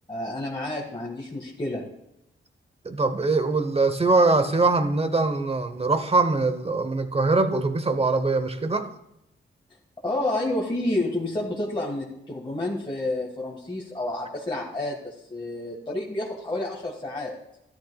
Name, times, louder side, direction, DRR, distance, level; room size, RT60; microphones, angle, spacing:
voice 1, 0.1-1.9 10.0-17.4, left 1 dB, 25° left, 1.8 m, -29 dB
voice 2, 2.8-8.9, right 3 dB, 30° right, 1.0 m, -22 dB
13.0 x 11.5 x 2.4 m
cardioid pair, 80°, 21 cm